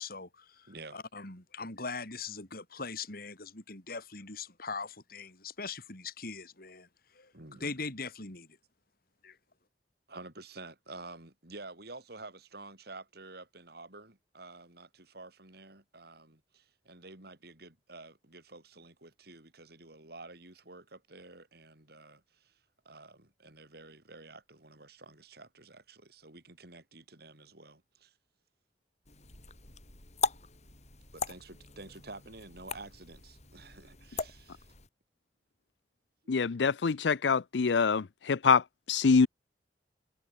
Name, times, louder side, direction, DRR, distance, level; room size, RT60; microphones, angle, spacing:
voice 1, 0.0-0.7 0.9-6.9 7.2-7.3 7.6-8.5 9.2-9.4, left 4 dB, 60° left, 5.5 m, -41 dB
voice 2, 0.7-1.0 7.3-7.8 10.1-28.1 31.1-34.7 36.2-36.3, right 3 dB, 65° right, 5.5 m, -50 dB
sound 1, 29.0-34.9, left 4 dB, 40° left, 6.1 m, -39 dB
voice 3, 36.3-38.6 38.9-39.3, left 5 dB, 85° left, 0.6 m, -25 dB
head